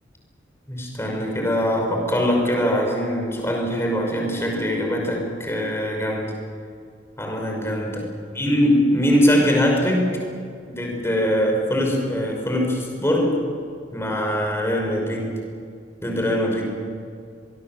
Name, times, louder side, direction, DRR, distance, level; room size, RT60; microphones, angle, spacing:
voice 1, 0.7-6.3 7.2-8.1 8.3-10.1 10.7-13.4 13.9-15.3 16.0-16.8, equal, 15° left, 1 dB, 5.6 m, -22 dB
25.5 x 20.5 x 7.8 m, 2.3 s
head